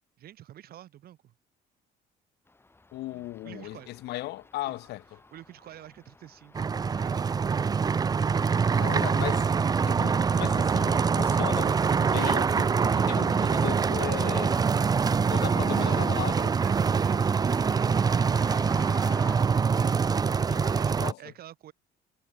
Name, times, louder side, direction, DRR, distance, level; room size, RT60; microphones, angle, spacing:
voice 1, 0.2-1.3 3.1-3.9 4.6-4.8 5.3-7.8 15.7-16.0 20.7-21.7, right 12 dB, 65° right, 3.3 m, -48 dB
sound 1, 2.5-19.4, left 2 dB, 15° left, 3.6 m, -52 dB
voice 2, 2.9-5.2 8.7-9.5 9.9-14.6 15.3-16.5 19.7-19.9 20.5-21.2, left 17 dB, 80° left, 1.2 m, -37 dB
sound 2, 6.5-21.1, right 5 dB, 25° right, 0.5 m, -24 dB
cardioid pair, 110°, 17 cm